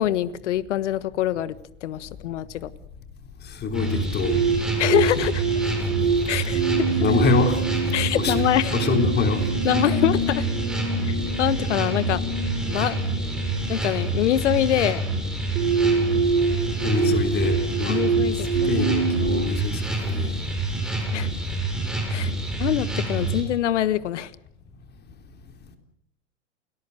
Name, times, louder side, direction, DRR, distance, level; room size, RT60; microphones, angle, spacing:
voice 1, 0.0-1.5 1.8-2.7 4.8-5.4 6.3-7.0 7.9-8.8 9.6-10.5 11.1-12.2 12.7-13.0 13.7-15.0 17.9-18.7 19.2-19.4 21.1-21.3 22.1-22.3 22.6-24.3, left 12 dB, 70° left, 1.4 m, -24 dB
voice 2, 3.6-4.4 7.0-7.6 8.1-8.4 8.7-9.4 16.8-18.0 18.7-20.4, left 4 dB, 25° left, 3.7 m, -24 dB
sound 1, 3.7-23.4, right 2 dB, ahead, 7.5 m, -27 dB
sound 2, 4.2-19.5, right 5 dB, 70° right, 3.2 m, -26 dB
29.0 x 19.5 x 6.5 m
hypercardioid pair, 105°, 38 cm